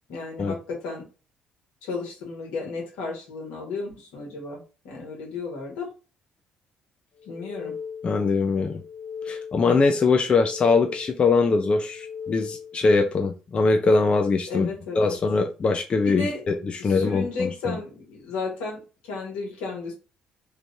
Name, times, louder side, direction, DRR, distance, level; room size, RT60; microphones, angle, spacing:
voice 1, 0.1-1.0 1.8-5.9 7.3-7.7 14.5-15.2 16.0-16.4 16.8-19.9, left 4 dB, 85° left, -1 dB, 1.5 m, -33 dB
sound 1, 7.2-8.3 8.7-9.8 10.2-11.3 11.7-12.9, left 6 dB, 60° left, 1.7 m, -38 dB
voice 2, 8.0-8.8 9.2-14.7 15.0-17.8, left 4 dB, 40° left, 5 dB, 0.5 m, -22 dB
3.2 x 2.5 x 3.3 m, 0.33 s
supercardioid pair, 65°, 3 cm